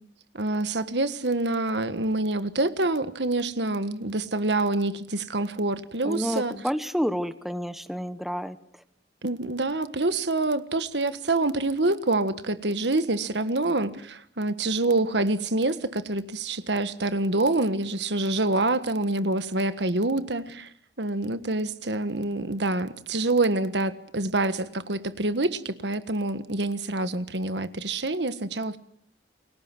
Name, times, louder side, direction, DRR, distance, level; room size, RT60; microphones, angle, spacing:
voice 1, 0.3-6.6 9.2-20.7 21.0-28.8, right 2 dB, 75° right, 12 dB, 1.5 m, -26 dB
voice 2, 6.0-8.6, equal, ahead, 11 dB, 1.1 m, -29 dB
30.0 x 22.0 x 6.1 m, 0.63 s
head